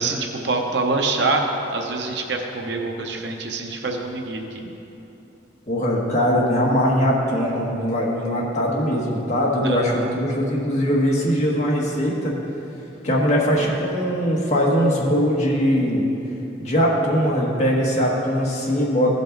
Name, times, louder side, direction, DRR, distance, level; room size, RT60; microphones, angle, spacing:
voice 1, 0.0-1.4 1.7-4.5 9.6-10.2, right 3 dB, 70° right, 2 dB, 0.8 m, -25 dB
voice 2, 5.7-12.4 13.0-16.1 16.6-19.1, equal, 40° left, -3 dB, 1.4 m, -21 dB
15.0 x 5.4 x 3.9 m, 2.9 s
head